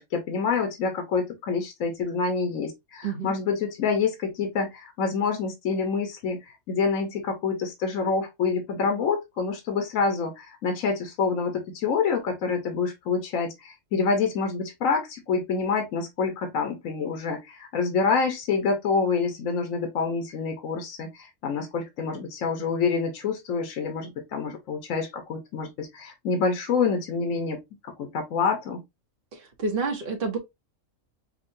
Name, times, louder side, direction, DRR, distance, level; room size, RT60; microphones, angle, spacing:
voice 1, 0.0-28.8, left 5 dB, 75° left, 1.3 m, -27 dB
voice 2, 3.0-3.3 29.3-30.4, right 4 dB, 45° right, 0.9 m, -29 dB
5.6 x 2.2 x 2.5 m
omnidirectional pair, 1.4 m